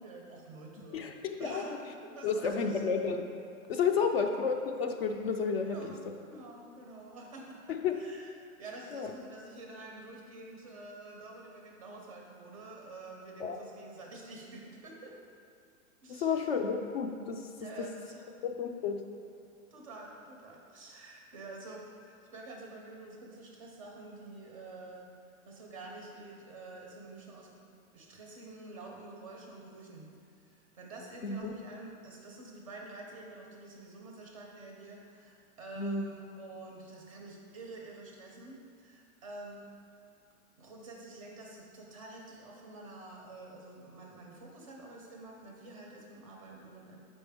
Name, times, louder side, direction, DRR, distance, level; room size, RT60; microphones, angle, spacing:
voice 1, 0.0-3.0 4.1-4.2 5.7-8.3 8.6-15.2 16.0-16.5 17.6-18.3 19.7-25.1 25.5-27.5 27.9-30.1 30.4-39.7 40.6-47.0, right 2 dB, 25° right, 0 dB, 0.4 m, -48 dB
voice 2, 0.9-1.7 2.2-3.3 3.7-5.9 7.8-7.9 8.9-9.1 13.4-13.6 16.1-17.4 18.4-19.0 31.2-31.5 35.8-36.0, left 5 dB, 45° left, 4 dB, 0.4 m, -31 dB
7.3 x 5.3 x 3.4 m, 2.4 s
supercardioid pair, 165°, 42 cm